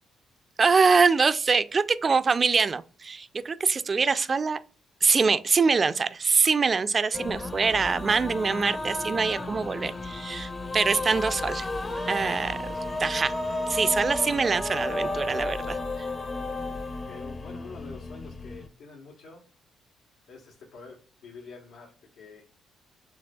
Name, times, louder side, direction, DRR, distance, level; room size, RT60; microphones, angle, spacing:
voice 1, 0.6-4.6 5.0-11.7 12.1-12.6 13.0-13.3 13.7-15.8, right 5 dB, 35° right, 0.4 m, -24 dB
sound 1, 7.1-18.7, left 2 dB, 30° left, 0.7 m, -33 dB
voice 2, 9.8-10.2 17.1-19.4 20.3-22.5, left 4 dB, 85° left, 1.4 m, -47 dB
6.0 x 3.5 x 2.3 m
cardioid pair, 90°, 0 cm